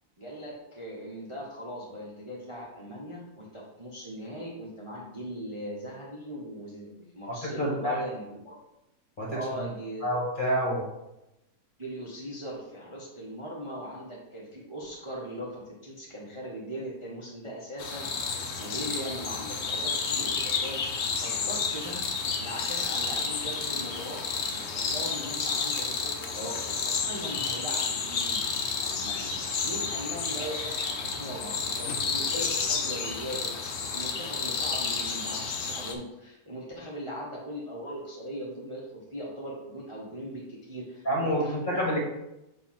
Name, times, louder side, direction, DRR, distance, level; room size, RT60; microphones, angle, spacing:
voice 1, 0.2-8.5 9.3-10.1 11.8-20.8 21.2-22.1 22.4-28.4 28.8-33.6 33.9-41.9, equal, 20° right, -5 dB, 1.0 m, -39 dB
voice 2, 7.3-8.0 9.2-9.7 10.0-10.8 41.0-42.1, equal, 30° left, -3 dB, 1.6 m, -28 dB
sound 1, 17.8-35.9, left 5 dB, 55° left, 1.0 m, -31 dB
6.9 x 3.1 x 5.9 m, 0.92 s
omnidirectional pair, 1.9 m